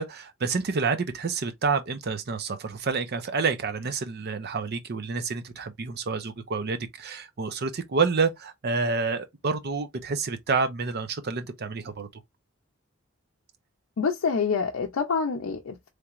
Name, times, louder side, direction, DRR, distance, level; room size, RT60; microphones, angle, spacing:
voice 1, 0.0-12.2, right 4 dB, 50° right, 0.6 m, -28 dB
voice 2, 14.0-15.9, left 5 dB, 85° left, 0.5 m, -27 dB
3.3 x 2.9 x 2.4 m
head